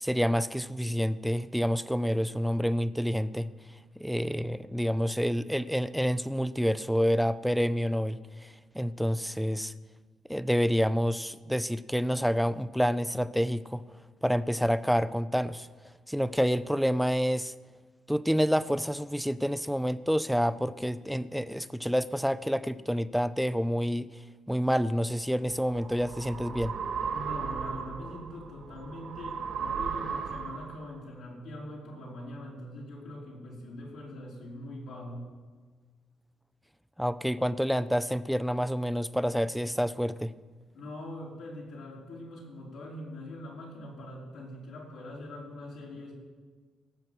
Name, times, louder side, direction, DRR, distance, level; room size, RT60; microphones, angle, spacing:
voice 1, 0.0-3.5 4.0-9.7 10.3-13.8 14.2-15.7 16.1-17.5 18.1-24.1 24.5-26.7 37.0-40.3, equal, ahead, 15 dB, 0.5 m, -28 dB
sound 1, 25.1-30.9, right 6 dB, 65° right, 2.0 m, -36 dB
voice 2, 27.1-35.3 40.7-46.1, left 1 dB, 80° left, -4 dB, 4.8 m, -42 dB
18.0 x 7.5 x 6.2 m, 1.5 s
cardioid pair, 90°, 0 cm